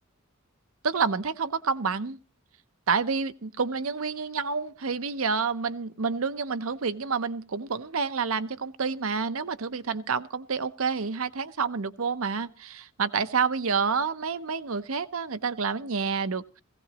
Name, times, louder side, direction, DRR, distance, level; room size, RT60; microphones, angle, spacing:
voice 1, 0.8-2.2 2.9-16.6, right 5 dB, 75° right, 0.7 m, -28 dB
17.5 x 16.0 x 3.0 m
head